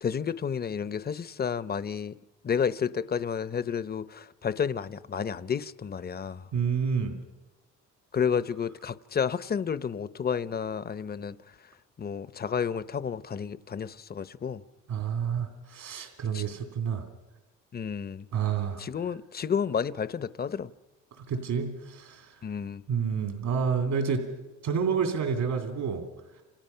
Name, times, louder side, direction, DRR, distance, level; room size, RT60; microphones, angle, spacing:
voice 1, 0.0-2.1 2.4-6.5 8.1-11.4 12.0-14.6 16.3-16.5 17.7-18.3 18.8-20.7 22.4-22.8, left 7 dB, 30° left, 0.8 m, -31 dB
voice 2, 6.5-7.1 14.9-17.0 18.3-18.8 21.2-22.4 22.9-24.3 24.6-26.0, right 6 dB, 75° right, 2.9 m, -29 dB
29.5 x 27.5 x 5.7 m
cardioid pair, 90°, 30 cm